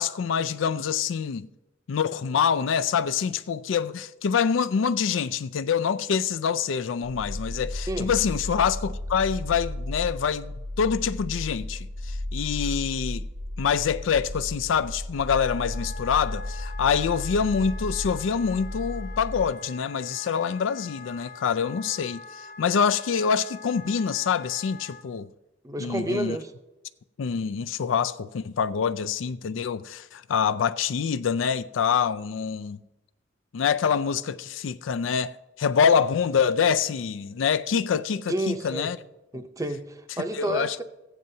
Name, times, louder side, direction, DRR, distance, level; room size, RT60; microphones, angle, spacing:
voice 1, 0.0-1.5 1.9-13.3 13.6-25.3 25.8-26.4 27.2-32.8 33.5-39.0 39.3-39.4 40.4-40.8, left 6 dB, 90° left, 0.4 m, -26 dB
sound 1, 7.0-19.4, left 1 dB, 90° right, 3.0 m, -34 dB
Wind instrument woodwind instrument, 15.1-25.0, left 4 dB, 45° left, 0.7 m, -44 dB
voice 2, 25.6-26.5 38.3-38.9 39.3-40.8, right 1 dB, 20° right, 0.6 m, -30 dB
15.0 x 9.0 x 2.7 m
head